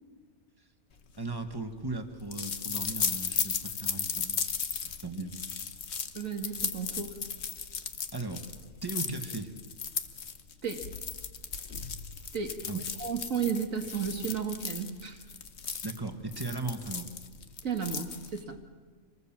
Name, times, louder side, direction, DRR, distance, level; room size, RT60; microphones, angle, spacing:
sound 1, 1.1-18.5, left 6 dB, 50° left, 1.3 m, -36 dB
voice 1, 1.2-4.4 4.8-5.3 8.1-8.5 8.8-9.5 12.6-12.8 15.8-17.1, right 2 dB, 15° right, 6 dB, 1.5 m, -37 dB
voice 2, 6.1-7.2 10.6-10.9 12.3-15.2 17.6-18.6, right 6 dB, 65° right, 5 dB, 1.8 m, -33 dB
26.0 x 20.0 x 7.4 m, 1.5 s
omnidirectional pair, 1.6 m